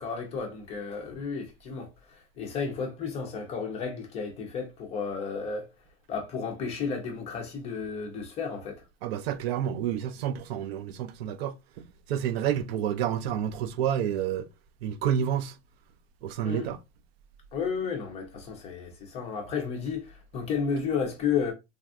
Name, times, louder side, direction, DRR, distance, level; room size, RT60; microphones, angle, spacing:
voice 1, 0.0-5.7 6.1-8.8 16.4-16.7 17.5-21.5, left 6 dB, 20° left, 0.4 m, -32 dB
voice 2, 9.0-14.5 14.8-15.5 16.2-16.8, right 9 dB, 60° right, 0.4 m, -29 dB
3.4 x 2.4 x 2.3 m
supercardioid pair, 155°, 35 cm